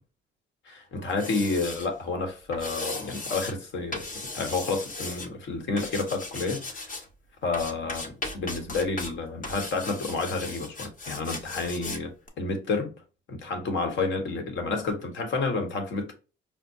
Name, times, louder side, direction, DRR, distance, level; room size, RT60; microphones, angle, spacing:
voice 1, 0.6-6.9 7.4-12.9 13.3-16.1, left 3 dB, 70° left, 1.3 m, -30 dB
sound 1, 1.1-1.9 2.5-3.5 3.9-5.3 5.8-7.1 7.5-9.1 9.4-12.0 12.3-12.4, left 2 dB, 45° left, 1.0 m, -37 dB
5.1 x 2.2 x 2.6 m
cardioid pair, 90°, 20 cm